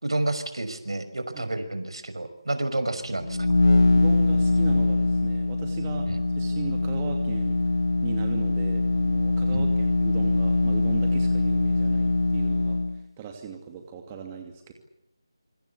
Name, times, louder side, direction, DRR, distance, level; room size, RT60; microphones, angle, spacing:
voice 1, 0.0-3.4 6.1-6.2 9.5-9.7, right 2 dB, 80° right, 10 dB, 5.6 m, -29 dB
sound 1, 3.1-13.0, left 2 dB, 80° left, 1.6 m, -23 dB
voice 2, 3.9-7.6 8.0-14.7, right 6 dB, 15° right, 4 dB, 2.6 m, -38 dB
26.5 x 25.0 x 8.3 m, 0.80 s
figure-of-eight pair, 165°, 3 cm